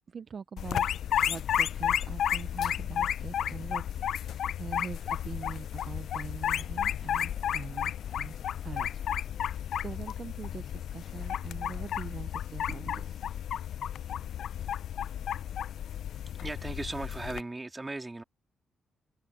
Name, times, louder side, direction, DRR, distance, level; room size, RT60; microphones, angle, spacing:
voice 1, 0.1-0.9 1.3-8.3 8.6-9.1 9.5-13.3, right 5 dB, 40° right, 0.5 m, -43 dB
sound 1, 0.6-17.4, left 10 dB, 70° left, 0.4 m, -32 dB
sound 2, 6.5-9.4, left 3 dB, 25° left, 5.7 m, -59 dB
voice 2, 16.4-18.2, right 2 dB, 15° right, 2.3 m, -37 dB
open air
cardioid pair, 135°, 0 cm